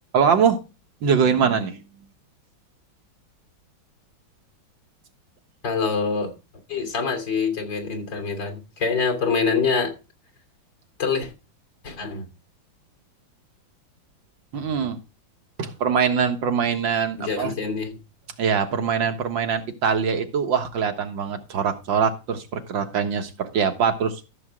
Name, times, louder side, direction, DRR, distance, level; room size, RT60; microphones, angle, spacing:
voice 1, 0.1-0.6 1.0-1.8 14.5-15.0 15.6-17.5 18.4-24.2, right 6 dB, 75° right, 2.1 m, -23 dB
voice 2, 5.6-6.3 6.7-9.9 11.0-11.3 11.8-12.3 17.2-18.0, left 5 dB, 70° left, 3.8 m, -25 dB
14.0 x 7.2 x 3.7 m
omnidirectional pair, 2.1 m